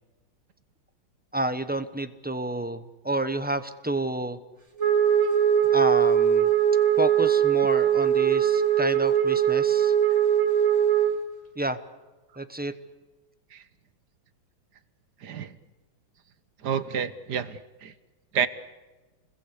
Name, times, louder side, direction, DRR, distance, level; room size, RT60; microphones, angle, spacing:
voice 1, 1.3-4.4 5.7-6.5 7.0-9.9 11.6-11.8 12.4-12.7, right 2 dB, 10° right, 10 dB, 0.5 m, -29 dB
Wind instrument woodwind instrument, 4.8-11.2, right 9 dB, 35° right, 3.3 m, -21 dB
voice 2, 15.2-15.5 16.6-17.9 18.3-18.5, right 7 dB, 60° right, 13 dB, 1.6 m, -29 dB
29.5 x 21.0 x 8.3 m, 1.2 s
omnidirectional pair, 2.1 m